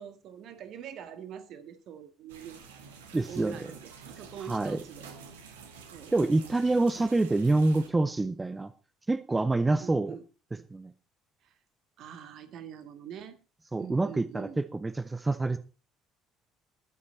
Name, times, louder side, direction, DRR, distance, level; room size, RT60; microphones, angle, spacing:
voice 1, 0.0-2.6 3.0-5.4 5.9-6.2 6.9-7.2 9.8-10.3 11.4-11.6 12.0-13.4 13.8-14.6, right 8 dB, 55° right, 11 dB, 1.9 m, -44 dB
sound 1, 2.3-7.9, right 5 dB, 75° right, 1.7 m, -49 dB
voice 2, 3.1-3.6 4.5-4.8 6.1-8.7 9.1-10.1 10.7-10.9 13.7-15.6, right 2 dB, 15° right, 13 dB, 0.8 m, -26 dB
21.0 x 8.7 x 4.2 m, 0.33 s
figure-of-eight pair, 55°, 0 cm